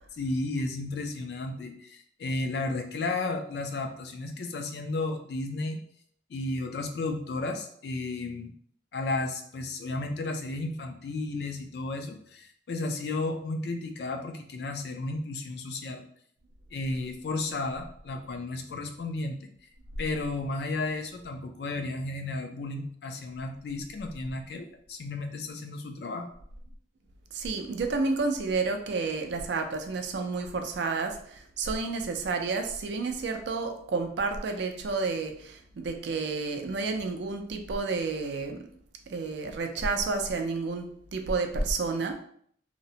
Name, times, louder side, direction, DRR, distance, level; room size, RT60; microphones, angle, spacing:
voice 1, 0.2-5.8 6.3-8.5 8.9-16.0 16.7-19.5 20.0-26.3, left 2 dB, 65° left, 5 dB, 0.3 m, -33 dB
voice 2, 27.3-38.7 39.1-42.1, right 4 dB, 75° right, 5 dB, 0.4 m, -30 dB
2.8 x 2.0 x 2.7 m, 0.63 s
head